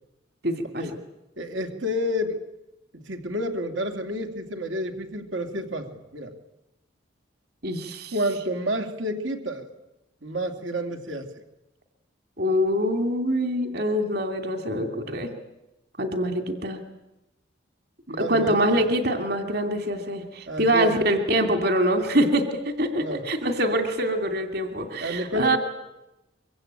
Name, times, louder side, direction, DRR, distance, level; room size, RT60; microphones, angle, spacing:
voice 1, 0.4-0.9 7.6-8.1 12.4-15.3 16.0-16.8 18.1-25.6, equal, 55° right, 6 dB, 2.7 m, -24 dB
voice 2, 1.4-2.4 2.9-6.3 8.1-9.7 10.2-11.3 18.1-18.8 20.5-20.9 23.0-23.2 25.0-25.6, equal, 85° right, 4 dB, 2.8 m, -30 dB
24.5 x 23.5 x 8.9 m, 0.94 s
head